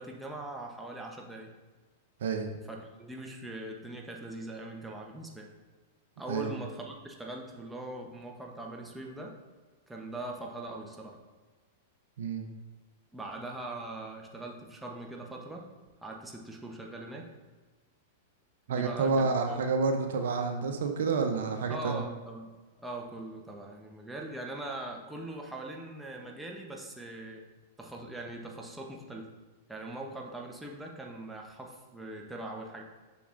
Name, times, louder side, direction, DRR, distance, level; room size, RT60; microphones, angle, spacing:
voice 1, 0.0-1.5 2.7-5.5 6.2-9.4 9.9-11.2 13.1-15.7 16.0-17.3 18.7-19.6 21.7-22.5 22.8-27.5 27.8-29.3 29.7-32.8, right 2 dB, 5° right, 0 dB, 0.9 m, -41 dB
voice 2, 2.2-2.5 6.3-6.5 12.2-12.5 18.7-22.0, right 4 dB, 75° right, 5 dB, 0.7 m, -29 dB
6.8 x 5.9 x 2.6 m, 1.3 s
hypercardioid pair, 120°, 0 cm